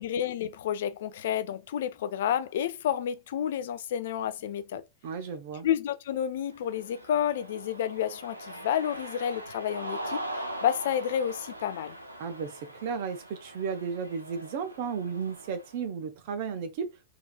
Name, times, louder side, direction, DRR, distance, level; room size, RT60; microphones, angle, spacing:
voice 1, 0.0-4.8 5.6-10.2 10.6-12.0, left 9 dB, 60° left, 0.4 m, -30 dB
voice 2, 5.0-5.7 12.2-16.9, right 6 dB, 50° right, 0.8 m, -34 dB
Cheering, 6.5-15.7, right 1 dB, 85° right, 0.6 m, -41 dB
3.8 x 2.8 x 2.3 m
figure-of-eight pair, 90°, 0 cm